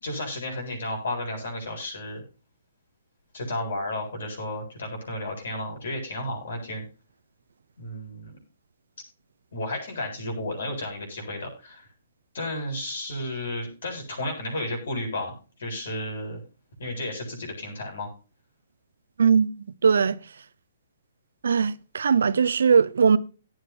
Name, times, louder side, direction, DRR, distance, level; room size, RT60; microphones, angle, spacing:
voice 1, 0.0-2.2 3.3-6.8 7.8-8.3 9.5-11.9 12.3-16.4 16.8-18.1, left 1 dB, 65° left, 7.8 m, -33 dB
voice 2, 19.8-20.2 21.4-23.2, right 6 dB, 70° right, 0.8 m, -20 dB
18.0 x 8.3 x 2.9 m
figure-of-eight pair, 130°, 0 cm